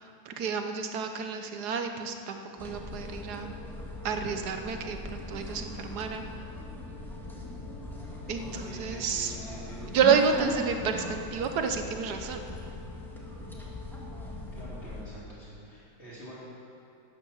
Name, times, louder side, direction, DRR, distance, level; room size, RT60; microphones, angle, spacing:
voice 1, 0.0-3.5 4.0-6.5 8.3-9.4 9.9-12.4, right 6 dB, 60° right, 6 dB, 1.3 m, -30 dB
sound 1, 2.6-15.0, left 1 dB, ahead, 1.5 m, -40 dB
voice 2, 8.4-9.9 10.1-10.3 14.5-16.4, equal, 30° left, -9 dB, 4.5 m, -46 dB
12.5 x 9.9 x 7.1 m, 2.6 s
omnidirectional pair, 2.2 m